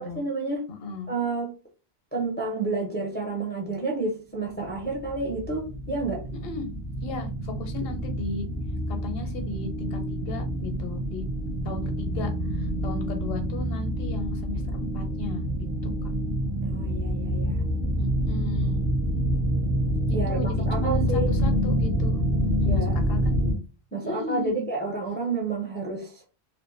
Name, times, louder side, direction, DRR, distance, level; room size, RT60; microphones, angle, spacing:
voice 1, 0.0-0.6 1.1-1.5 2.1-6.2 16.6-17.6 20.1-21.3 22.7-23.0 23.9-26.2, right 3 dB, 15° left, 0.4 m, -30 dB
voice 2, 0.7-1.1 6.4-6.7 7.0-8.5 8.9-11.2 11.6-12.3 12.6-16.1 18.0-18.8 20.3-22.2 22.6-23.4 24.0-24.7, left 2 dB, 65° left, 0.8 m, -36 dB
sound 1, 4.6-23.5, equal, 65° right, 0.9 m, -27 dB
2.6 x 2.1 x 2.5 m
omnidirectional pair, 1.1 m